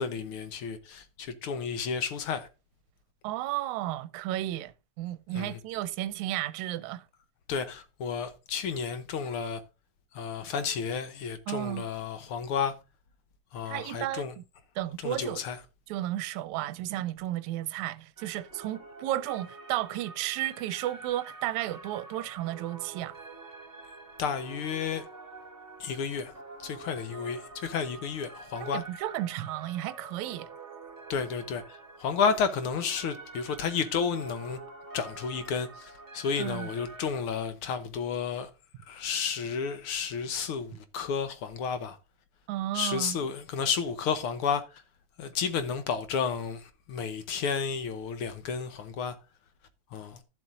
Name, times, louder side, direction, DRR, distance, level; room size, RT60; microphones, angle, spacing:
voice 1, 0.0-2.5 5.3-5.5 7.5-9.6 10.1-12.7 13.5-14.3 15.0-15.6 24.2-25.0 25.8-26.3 26.6-28.8 31.1-34.6 34.9-38.5 38.9-42.0 42.7-44.8 45.2-49.2 49.9-50.2, left 6 dB, 70° left, 1.3 m, -32 dB
voice 2, 3.2-7.1 11.5-11.8 13.7-14.2 14.8-15.4 15.9-23.2 28.6-30.5 36.4-36.7 42.5-43.2, right 14 dB, 85° right, 2.0 m, -33 dB
sound 1, 18.2-37.1, right 3 dB, 5° right, 3.3 m, -47 dB
13.5 x 7.7 x 2.5 m
omnidirectional pair, 3.3 m